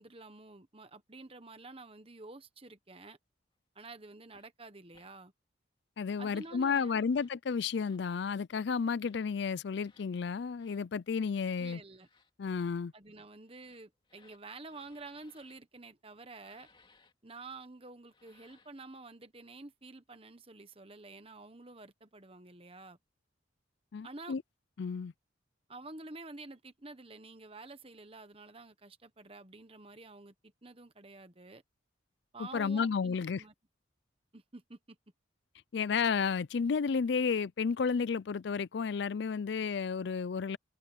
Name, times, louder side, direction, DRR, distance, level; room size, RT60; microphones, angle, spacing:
voice 1, 0.0-3.2 3.7-5.3 6.2-7.0 11.6-12.1 12.9-16.7 17.2-23.0 24.0-24.4 25.7-31.6 32.3-33.5 34.3-35.0, right 3 dB, 30° right, 1.2 m, -49 dB
sound 1, 4.3-4.5 4.9-5.1 6.2-6.6 7.1-7.4 7.7-8.1 8.9-9.3 9.8-10.1 10.6-10.9 11.8-12.3 13.4-15.6 16.3-17.1 18.0-18.8, left 4 dB, 25° left, 2.7 m, -66 dB
voice 2, 6.0-11.8 12.4-12.9 23.9-24.4 24.8-25.1 32.5-33.4 35.7-40.6, left 5 dB, 60° left, 0.4 m, -32 dB
open air
head